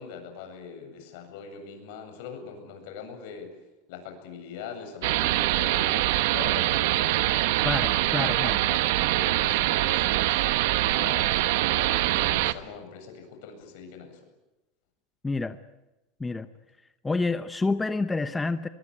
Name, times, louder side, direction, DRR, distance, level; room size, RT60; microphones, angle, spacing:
voice 1, 0.0-3.5 3.9-7.4 8.1-8.3 8.7-10.4 10.9-14.2, left 6 dB, 70° left, 7.8 m, -42 dB
sound 1, 5.0-12.5, right 16 dB, 75° right, 1.2 m, -24 dB
voice 2, 7.6-8.6 15.2-15.6 16.2-16.5 17.0-18.7, left 3 dB, 10° left, 0.8 m, -28 dB
23.0 x 23.0 x 9.8 m
supercardioid pair, 150°, 0 cm